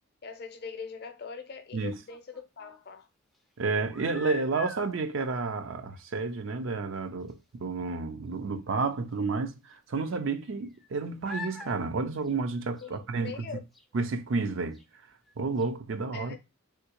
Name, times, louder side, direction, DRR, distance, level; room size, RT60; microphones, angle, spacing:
voice 1, 0.2-3.1 12.8-13.6 16.1-16.4, left 5 dB, 45° left, 0.6 m, -42 dB
sound 1, 1.8-2.8 3.7-5.0 5.9-6.1 6.4-6.5 6.9-7.0 7.3-7.4 9.1-9.2 10.0-10.9 11.2-11.7 12.1-13.0 13.7-13.8 14.7-14.8 15.3-15.4 15.6-15.7, left 4 dB, ahead, 0.4 m, -44 dB
voice 2, 3.6-13.5 13.9-14.8 15.4-16.4, right 4 dB, 60° right, 0.5 m, -31 dB
3.5 x 2.7 x 2.9 m
head